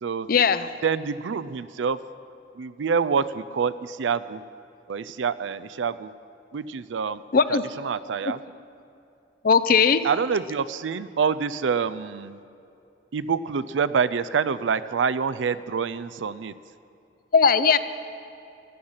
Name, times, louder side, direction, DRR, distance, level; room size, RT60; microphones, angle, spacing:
voice 1, 0.3-0.7 7.3-7.6 9.4-10.1 17.3-17.8, left 5 dB, 50° left, 13 dB, 0.5 m, -18 dB
voice 2, 0.8-2.0 2.6-4.4 4.9-6.1 6.5-7.2 7.5-8.4 10.0-12.4 13.1-16.5, right 6 dB, 85° right, 15 dB, 0.4 m, -26 dB
15.0 x 12.0 x 5.6 m, 2.7 s
head